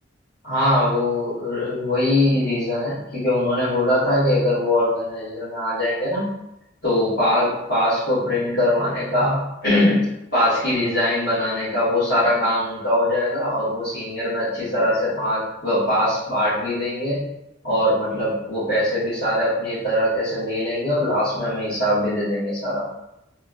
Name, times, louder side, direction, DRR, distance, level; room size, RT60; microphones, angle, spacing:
voice 1, 0.4-6.3 6.8-17.2 17.6-22.8, left 1 dB, 60° left, -13 dB, 1.2 m, -22 dB
3.0 x 2.1 x 2.4 m, 0.87 s
head